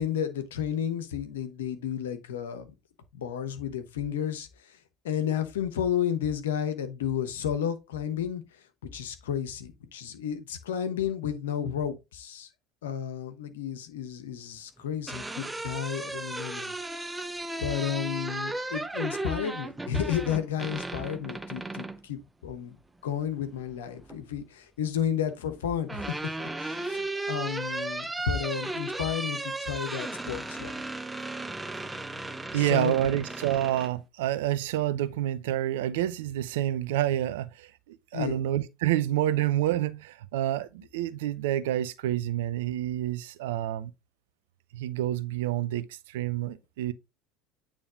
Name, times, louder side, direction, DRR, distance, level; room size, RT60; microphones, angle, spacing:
voice 1, 0.0-2.7 3.1-4.8 5.0-8.4 8.9-12.5 12.8-16.7 17.6-22.8 23.0-26.1 26.4-30.8 32.6-33.2 38.1-38.4, left 9 dB, 75° left, 1.0 m, -32 dB
sound 1, 14.8-22.0 23.5-24.2 25.4-33.9, right 2 dB, 10° right, 0.6 m, -35 dB
voice 2, 32.5-43.9 44.7-46.9, right 13 dB, 70° right, 0.6 m, -28 dB
8.7 x 3.4 x 3.6 m
figure-of-eight pair, 70°, 0 cm